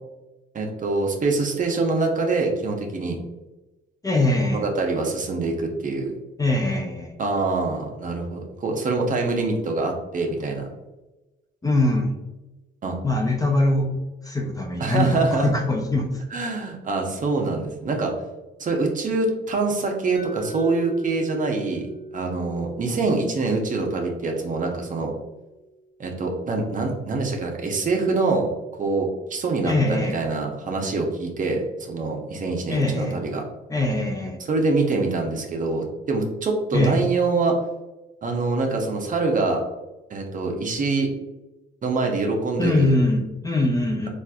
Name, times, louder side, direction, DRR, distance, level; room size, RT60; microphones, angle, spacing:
voice 1, 0.5-3.2 4.5-6.1 7.2-10.6 12.8-13.0 14.8-15.5 16.3-18.1 18.6-25.1 26.0-28.5 28.8-33.4 34.5-37.5 38.2-39.6 40.1-41.1 41.8-43.0, right 3 dB, 40° right, 2 dB, 0.7 m, -25 dB
voice 2, 4.0-4.7 6.4-7.1 11.6-12.1 13.0-13.9 14.2-16.2 29.6-30.2 32.7-33.2 33.7-34.4 36.7-37.0 42.6-44.1, left 2 dB, 20° left, 2 dB, 0.5 m, -22 dB
Mallet percussion, 20.1-26.0, right 1 dB, 45° left, 1.2 m, -40 dB
4.1 x 2.4 x 2.3 m, 1.1 s
cardioid pair, 90°, 20 cm